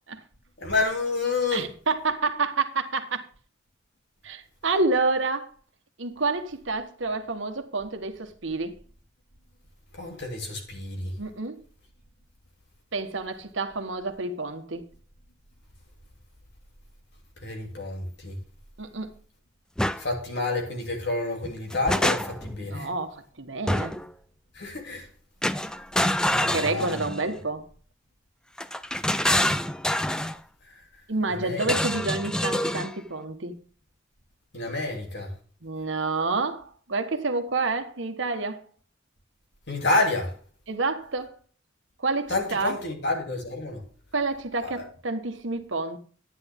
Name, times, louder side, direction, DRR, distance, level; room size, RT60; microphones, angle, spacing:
voice 1, 0.6-1.7 9.9-11.1 17.4-18.4 20.0-22.9 24.5-25.1 26.3-27.0 30.6-30.8 31.3-31.7 34.5-35.3 39.7-40.4 42.3-43.8 44.6-44.9, left 2 dB, 60° left, 3.0 m, -29 dB
voice 2, 1.5-3.3 4.2-5.5 6.0-8.8 11.2-11.6 12.9-14.8 18.8-19.1 22.6-24.0 26.4-27.6 31.1-33.6 35.6-38.6 40.7-41.3 42.0-42.8 44.1-46.0, right 3 dB, 70° right, 1.3 m, -29 dB
sound 1, 19.8-20.0 21.4-22.6 23.7-24.1 25.4-27.3 28.6-30.4 31.6-32.9, left 1 dB, 5° left, 0.4 m, -26 dB
10.0 x 9.8 x 3.6 m
head